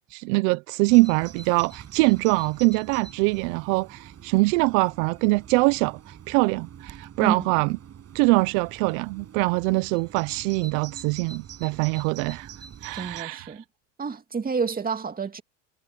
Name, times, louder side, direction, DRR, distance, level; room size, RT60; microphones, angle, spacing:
voice 1, 0.1-7.8 8.1-12.5 12.8-13.5, right 25 dB, 70° right, 0.9 m, -23 dB
Bird vocalization bird call bird song, 0.9-13.2, right 8 dB, 40° right, 7.4 m, -45 dB
voice 2, 7.2-7.5 12.9-13.6 14.0-15.4, right 5 dB, 20° right, 2.4 m, -29 dB
supercardioid pair, 105°, 40 cm